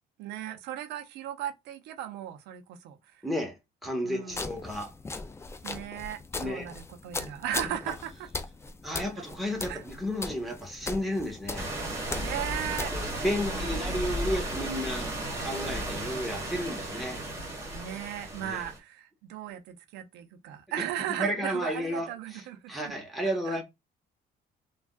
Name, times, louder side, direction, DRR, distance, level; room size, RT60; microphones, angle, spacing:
voice 1, 0.2-3.2 4.0-4.6 5.6-8.3 8.9-9.2 9.7-9.8 12.2-12.9 13.4-14.0 17.7-22.9 23.5-23.6, right 11 dB, 90° right, 0.6 m, -37 dB
voice 2, 3.2-3.6 3.8-4.9 6.4-6.7 8.8-11.7 12.9-15.1 15.4-17.2 18.4-18.6 21.2-22.4 22.7-23.6, equal, ahead, 1.0 m, -32 dB
sound 1, 4.3-13.3, left 3 dB, 15° left, 0.4 m, -39 dB
sound 2, 11.5-18.8, right 1 dB, 15° right, 1.5 m, -34 dB
3.4 x 2.3 x 2.3 m
cardioid pair, 110°, 17 cm